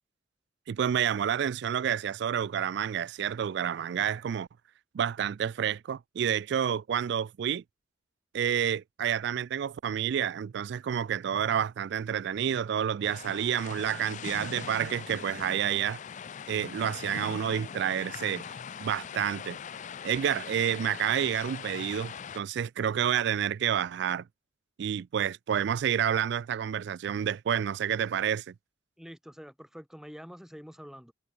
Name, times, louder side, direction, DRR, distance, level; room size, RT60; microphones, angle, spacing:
voice 1, 0.7-4.5 4.9-7.6 8.3-16.0 16.5-18.4 18.8-19.6 20.0-24.2 24.8-28.5, right 9 dB, 60° right, 0.3 m, -29 dB
sound 1, 13.0-22.4, left 7 dB, 40° left, 0.4 m, -41 dB
voice 2, 29.0-31.1, equal, 5° right, 3.1 m, -46 dB
head